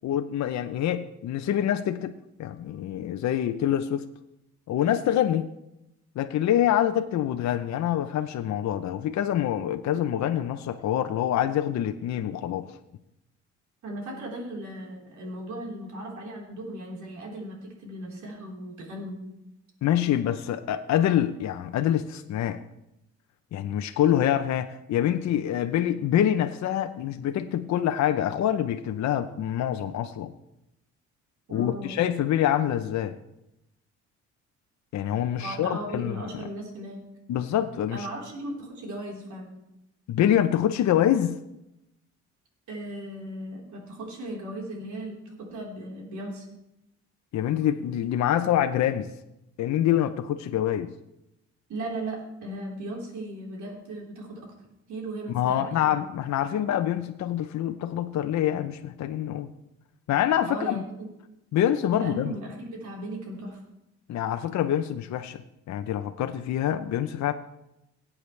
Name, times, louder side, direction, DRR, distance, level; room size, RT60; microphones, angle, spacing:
voice 1, 0.0-4.0 4.7-5.5 6.2-12.8 19.8-22.6 23.5-30.3 31.5-33.2 34.9-36.4 37.3-38.1 40.1-41.4 47.3-49.1 49.6-50.9 55.3-59.5 60.1-60.8 61.5-62.3 64.1-65.4 65.7-67.3, left 11 dB, 65° left, 8 dB, 0.7 m, -26 dB
voice 2, 13.8-19.2 31.5-32.0 35.4-37.0 37.9-39.5 42.7-46.5 51.7-54.5 54.9-56.0 60.5-61.1 61.9-63.6, right 1 dB, 70° right, -2 dB, 4.1 m, -37 dB
18.5 x 8.6 x 3.3 m, 0.87 s
cardioid pair, 90°, 30 cm